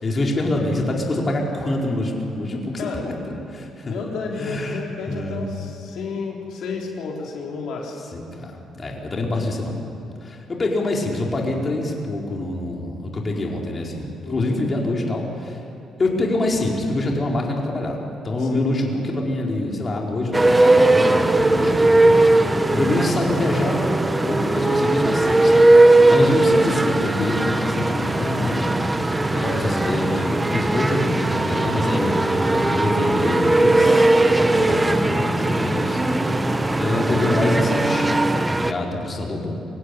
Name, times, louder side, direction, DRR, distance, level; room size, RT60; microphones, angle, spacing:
voice 1, 0.0-3.1 3.5-3.9 4.4-4.8 5.1-5.5 8.1-9.8 10.2-15.6 16.0-18.0 18.2-25.6 26.1-28.7 29.3-36.0 36.8-38.2 38.5-39.5, left 2 dB, 35° left, -1 dB, 4.5 m, -25 dB
voice 2, 3.9-8.0 14.2-14.6 18.4-18.7, left 4 dB, 80° left, -1 dB, 3.7 m, -32 dB
sound 1, 20.3-38.7, right 2 dB, 15° right, 1.1 m, -18 dB
24.5 x 16.5 x 10.0 m, 2.7 s
cardioid pair, 90°, 0 cm